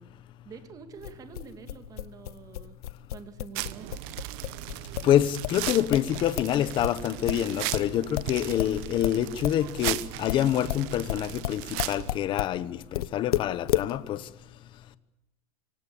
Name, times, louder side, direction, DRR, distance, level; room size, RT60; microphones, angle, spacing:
voice 1, 0.4-2.8 3.1-3.9, right 6 dB, 20° right, 2.2 m, -46 dB
sound 1, 1.0-6.6 6.8-12.6 12.9-13.9, left 14 dB, 75° left, 1.1 m, -32 dB
sound 2, 3.5-12.2, right 18 dB, 40° right, 1.0 m, -37 dB
voice 2, 5.0-14.2, left 11 dB, 25° left, 1.1 m, -26 dB
25.5 x 24.5 x 7.1 m
supercardioid pair, 165°, 19 cm